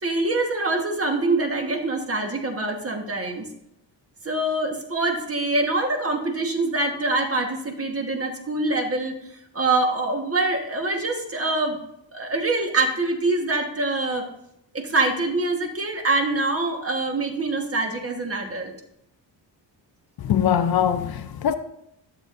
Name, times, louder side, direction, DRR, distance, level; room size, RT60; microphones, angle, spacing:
voice 1, 0.0-3.5 4.2-9.1 9.5-11.8 12.1-14.3 14.7-18.7, right 2 dB, 30° right, 1.3 m, -24 dB
voice 2, 20.2-21.6, left 9 dB, 55° left, 0.6 m, -22 dB
12.5 x 7.2 x 2.5 m
cardioid pair, 105°, 44 cm